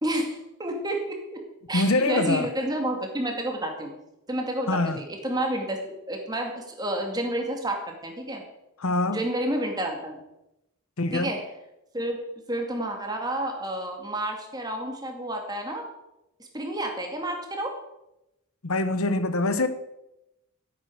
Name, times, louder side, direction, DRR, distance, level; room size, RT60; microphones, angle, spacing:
voice 1, 0.0-1.4 1.7-3.9 4.3-8.4 9.1-10.2 11.1-11.5 11.9-15.9 16.4-17.8, right 1 dB, 20° right, 2.3 m, -30 dB
voice 2, 1.7-2.5 4.7-5.0 8.8-9.2 11.0-11.3 18.6-19.7, left 2 dB, 85° left, 1.0 m, -24 dB
14.0 x 8.7 x 6.4 m
head